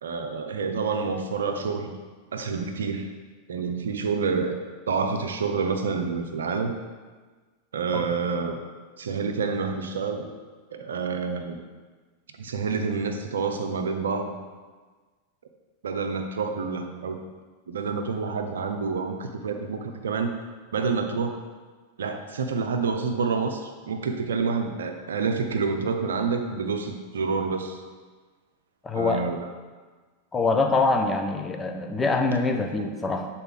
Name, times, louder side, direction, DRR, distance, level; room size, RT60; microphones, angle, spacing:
voice 1, 0.0-1.9 2.3-3.1 3.5-4.6 4.9-6.7 7.7-8.6 9.0-10.3 10.7-11.6 12.4-14.3 15.8-17.2 17.7-20.3 20.7-21.4 22.0-27.8 28.9-29.4, right 5 dB, 65° right, 6 dB, 0.6 m, -28 dB
voice 2, 28.8-29.2 30.3-33.3, left 3 dB, 15° left, 5 dB, 0.6 m, -24 dB
8.0 x 4.1 x 3.8 m, 1.4 s
figure-of-eight pair, 90°, 0 cm